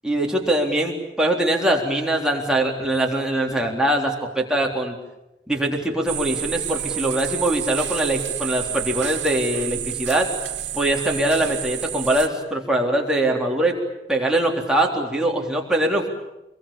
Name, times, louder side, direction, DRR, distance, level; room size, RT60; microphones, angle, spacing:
voice 1, 0.0-5.0 5.5-10.3 10.7-13.8 14.1-16.1, right 1 dB, 5° right, -1 dB, 3.8 m, -22 dB
sound 1, 6.1-12.3, right 11 dB, 90° right, 1.8 m, -29 dB
26.0 x 22.5 x 8.8 m, 0.91 s
head